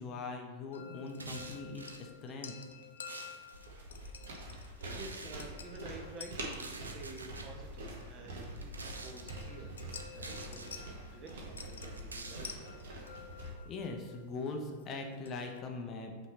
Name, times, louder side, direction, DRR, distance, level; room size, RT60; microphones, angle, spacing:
voice 1, 0.0-2.5 13.6-16.1, left 3 dB, 30° left, 3 dB, 0.7 m, -41 dB
sound 1, 0.7-15.6, left 7 dB, 65° left, 0.5 m, -52 dB
sound 2, 1.1-2.1 2.7-3.7 4.8-5.5 6.4-7.5 8.5-9.3 10.0-10.8 11.6-12.6, right 3 dB, 75° right, 0.5 m, -47 dB
sound 3, 3.5-13.5, right 1 dB, 60° right, 1.0 m, -45 dB
voice 2, 4.9-8.7 9.0-12.6, right 3 dB, 30° right, 2 dB, 1.0 m, -50 dB
5.6 x 3.0 x 5.6 m, 1.3 s
figure-of-eight pair, 90°, 0 cm